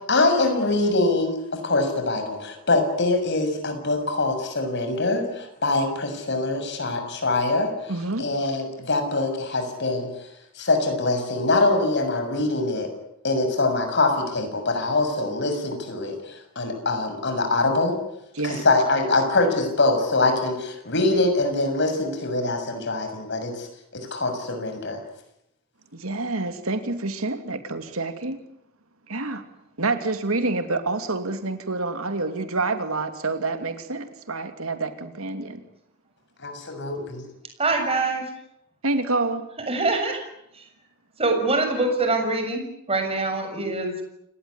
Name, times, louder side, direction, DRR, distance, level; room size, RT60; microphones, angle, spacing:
voice 1, 0.1-1.4 1.6-7.7 8.2-10.1 10.6-12.9 13.2-18.0 18.4-23.7 23.9-25.0 36.4-37.2, left 2 dB, 55° left, 6 dB, 6.8 m, -23 dB
voice 2, 7.9-8.3 18.3-18.6 25.9-28.4 29.1-29.5 29.8-35.6 38.8-39.5, right 3 dB, 85° right, 7 dB, 2.8 m, -27 dB
voice 3, 37.6-38.2 39.7-40.2 41.2-42.6 42.9-43.9, right 3 dB, 30° right, 5 dB, 7.0 m, -23 dB
29.5 x 18.5 x 9.8 m, 0.80 s
head